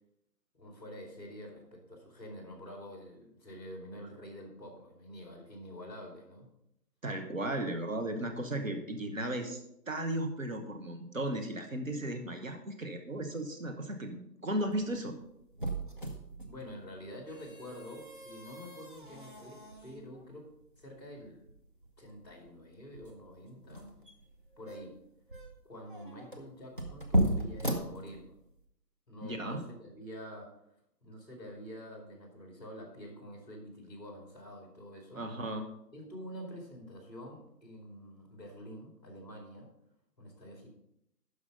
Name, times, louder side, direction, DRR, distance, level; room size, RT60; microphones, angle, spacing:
voice 1, 0.5-6.5 16.4-20.5 20.8-21.5 22.0-23.9 24.6-24.9 25.6-28.3 29.1-30.5 31.0-35.2 35.9-39.7 40.2-40.7, equal, 25° left, 1 dB, 2.4 m, -47 dB
voice 2, 7.0-9.6 9.9-15.2 29.2-29.6 35.1-35.7, right 1 dB, 55° right, 5 dB, 1.2 m, -35 dB
sound 1, 14.5-28.6, right 1 dB, 30° right, 0.8 m, -37 dB
12.0 x 5.0 x 5.2 m, 0.79 s
figure-of-eight pair, 170°, 49 cm